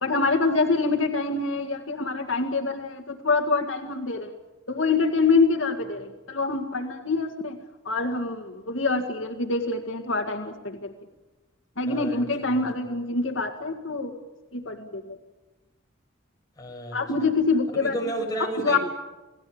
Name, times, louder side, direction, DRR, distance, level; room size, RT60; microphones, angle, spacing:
voice 1, 0.0-4.3 4.7-7.6 7.9-10.9 11.8-14.1 14.5-15.2 16.9-17.9 18.4-18.8, left 3 dB, 75° left, 4 dB, 2.0 m, -25 dB
voice 2, 11.9-12.9 16.6-17.3 17.7-18.8, right 1 dB, 20° left, 1 dB, 7.2 m, -33 dB
29.0 x 19.0 x 8.8 m, 1.1 s
head